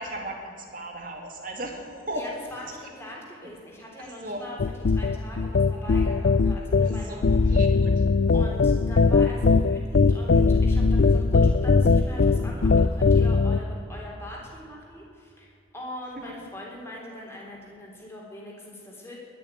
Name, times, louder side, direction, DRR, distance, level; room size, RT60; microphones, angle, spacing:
voice 1, 0.0-2.2 4.2-4.4 7.2-8.0, right 1 dB, 45° right, 2 dB, 2.5 m, -36 dB
voice 2, 2.1-7.6 8.3-19.2, left 1 dB, 15° left, -3 dB, 3.6 m, -42 dB
sound 1, 4.6-13.6, left 4 dB, 60° left, 0.4 m, -20 dB
21.0 x 6.9 x 9.4 m, 2.7 s
head